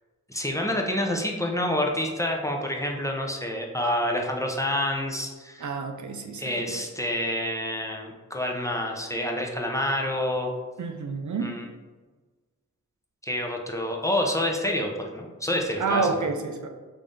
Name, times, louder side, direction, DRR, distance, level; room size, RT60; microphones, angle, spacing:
voice 1, 0.3-5.7 6.4-10.5 11.4-11.6 13.2-16.0, left 1 dB, 10° left, 0 dB, 0.6 m, -28 dB
voice 2, 5.6-6.8 10.8-11.5 15.8-16.7, right 4 dB, 70° right, 5 dB, 0.5 m, -29 dB
3.2 x 2.6 x 3.6 m, 1.3 s
cardioid pair, 40°, 31 cm